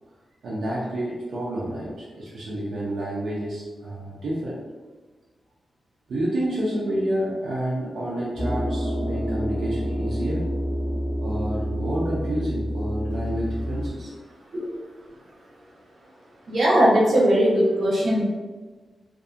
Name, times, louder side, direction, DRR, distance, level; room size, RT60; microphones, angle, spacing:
voice 1, 0.4-4.6 6.1-10.4 11.2-14.1, right 1 dB, 90° right, -7 dB, 0.5 m, -29 dB
sound 1, 8.3-13.9, equal, 20° left, 0.8 m, -28 dB
voice 2, 16.5-18.2, equal, 60° right, -6 dB, 0.8 m, -19 dB
2.7 x 2.5 x 2.4 m, 1.3 s
wide cardioid pair, 130°, 0 cm